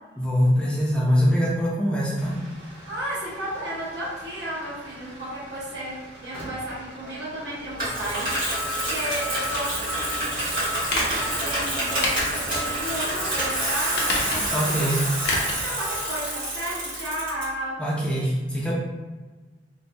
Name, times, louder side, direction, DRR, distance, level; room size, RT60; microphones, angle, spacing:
voice 1, 0.2-2.4 14.5-15.1 17.8-18.7, equal, 5° left, -5 dB, 0.5 m, -23 dB
sound 1, 2.2-16.2, left 1 dB, 35° right, 0.8 m, -39 dB
voice 2, 2.9-10.4 10.9-14.0 14.3-14.5 14.8-14.9 15.6-17.8, right 1 dB, 70° right, -7 dB, 1.1 m, -33 dB
Bicycle, 7.8-17.4, right 1 dB, 50° right, 1.5 m, -28 dB
sound 2, 10.9-11.3 12.0-12.7 13.1-13.2 13.9-14.6 15.2-15.6 16.0-16.1, left 1 dB, 65° left, 0.6 m, -27 dB
3.1 x 2.2 x 2.5 m, 1.3 s
head